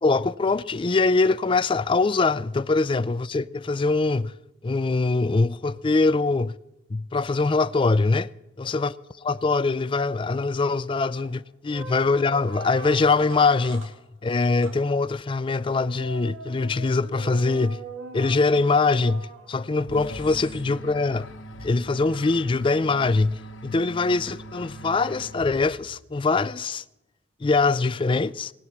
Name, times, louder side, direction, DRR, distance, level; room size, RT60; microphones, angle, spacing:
voice 1, 0.0-4.3 4.6-6.5 6.9-8.3 8.6-8.9 9.2-13.9 14.2-17.8 18.1-21.3 21.6-26.8 27.4-28.5, left 3 dB, 25° left, 0.4 m, -23 dB
sound 1, 11.2-11.4 11.7-13.9 14.6-14.8 15.6-19.8 20.2-20.6, right 3 dB, 85° right, 2.5 m, -41 dB
sound 2, 19.9-26.0, right 1 dB, 90° left, 1.2 m, -41 dB
17.5 x 9.9 x 6.0 m
head